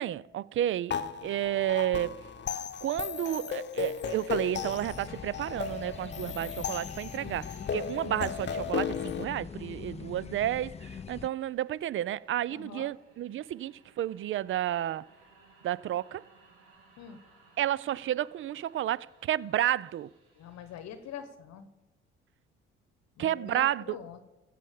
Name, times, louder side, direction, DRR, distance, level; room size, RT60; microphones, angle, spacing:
voice 1, 0.0-2.2 2.8-7.5 7.7-15.0 15.6-16.2 17.6-20.1 23.2-23.8, right 12 dB, 45° right, 0.4 m, -31 dB
sound 1, 0.9-9.2, left 7 dB, 35° left, 1.0 m, -35 dB
sound 2, 4.1-21.2, right 3 dB, 85° right, 2.4 m, -61 dB
sound 3, 4.5-11.3, left 7 dB, 20° left, 0.4 m, -43 dB
voice 2, 12.5-12.9 17.0-17.2 20.4-21.7 23.2-24.2, left 8 dB, 60° left, 1.0 m, -44 dB
15.0 x 5.6 x 7.4 m
hypercardioid pair, 55°, 30 cm